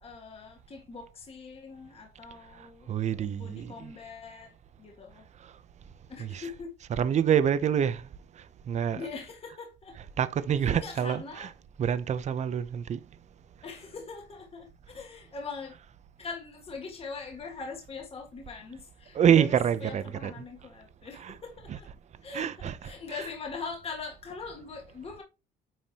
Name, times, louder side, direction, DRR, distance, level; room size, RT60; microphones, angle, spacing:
voice 1, 0.0-5.3 6.1-6.7 8.9-10.0 10.6-11.5 13.6-15.8 16.2-21.9 22.2-25.2, left 4 dB, 35° left, 1.7 m, -42 dB
voice 2, 2.9-3.9 6.2-6.5 6.9-8.0 8.7-9.1 10.2-11.5 11.8-13.0 19.1-20.3 21.1-21.4 21.7-21.8 22.3-23.3, right 8 dB, 45° right, 0.7 m, -27 dB
9.0 x 4.7 x 2.9 m
cardioid pair, 110°, 17 cm